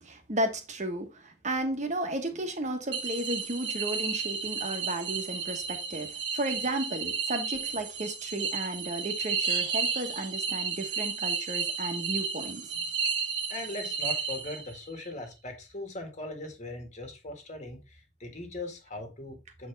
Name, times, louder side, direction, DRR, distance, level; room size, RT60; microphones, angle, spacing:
voice 1, 0.0-12.7, right 1 dB, 40° right, 1.3 m, -34 dB
sound 1, 2.9-14.9, right 5 dB, 65° right, 1.5 m, -32 dB
voice 2, 13.5-19.7, left 2 dB, 40° left, 1.8 m, -40 dB
7.6 x 4.6 x 3.4 m
head